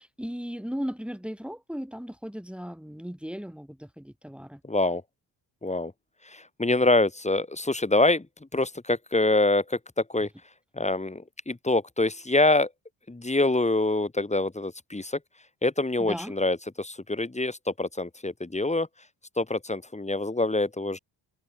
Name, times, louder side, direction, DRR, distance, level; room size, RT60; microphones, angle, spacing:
voice 1, 0.0-4.6 16.0-16.3, equal, ahead, 5.0 m, -36 dB
voice 2, 4.6-5.0 5.6-5.9 6.2-8.3 8.5-9.8 10.1-10.3 10.7-12.7 13.1-15.2 15.6-18.9 19.4-21.0, left 2 dB, 15° left, 2.7 m, -25 dB
cardioid pair, 65°, 46 cm